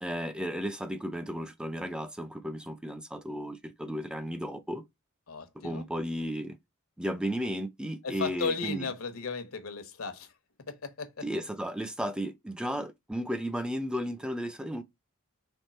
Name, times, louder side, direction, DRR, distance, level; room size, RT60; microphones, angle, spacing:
voice 1, 0.0-4.8 5.6-6.6 7.0-8.9 11.2-14.8, equal, 5° right, 0.4 m, -34 dB
voice 2, 5.3-5.8 8.0-10.3 10.7-11.2, left 4 dB, 80° left, 0.9 m, -35 dB
3.6 x 3.2 x 4.1 m
head